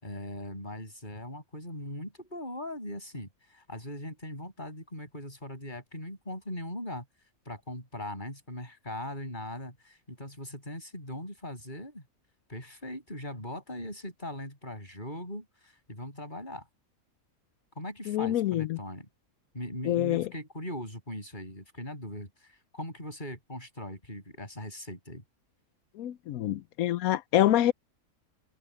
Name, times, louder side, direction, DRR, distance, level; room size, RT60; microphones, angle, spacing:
voice 1, 0.0-7.1 7.5-12.0 12.5-16.7 17.8-19.1 19.5-25.2, left 1 dB, 30° left, 7.8 m, -40 dB
voice 2, 18.1-18.8 19.9-20.3 26.0-27.7, left 13 dB, 85° left, 1.1 m, -26 dB
omnidirectional pair, 1.5 m